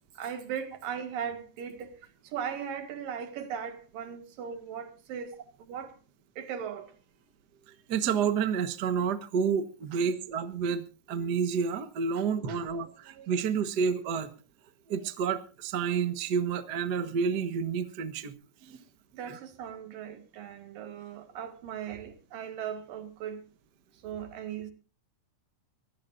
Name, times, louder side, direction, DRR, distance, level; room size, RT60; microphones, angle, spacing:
voice 1, 0.2-1.9 2.2-5.3 5.6-5.9 6.4-6.9 9.9-10.0 12.5-12.6 19.1-23.5 24.0-24.7, right 8 dB, 90° right, 3.6 m, -38 dB
voice 2, 7.9-14.3 14.9-18.3 18.6-18.8 19.3-19.4, right 6 dB, 55° right, 1.1 m, -29 dB
24.0 x 15.5 x 2.6 m
omnidirectional pair, 3.8 m